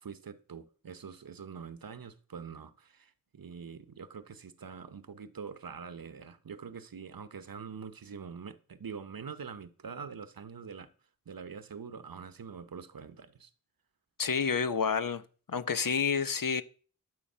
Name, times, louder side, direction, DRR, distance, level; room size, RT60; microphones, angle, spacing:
voice 1, 0.0-10.9 11.3-13.5, right 6 dB, 85° right, 1.0 m, -44 dB
voice 2, 14.2-15.2 15.5-16.6, left 6 dB, 70° left, 0.9 m, -29 dB
12.0 x 7.6 x 5.6 m
wide cardioid pair, 65°, 34 cm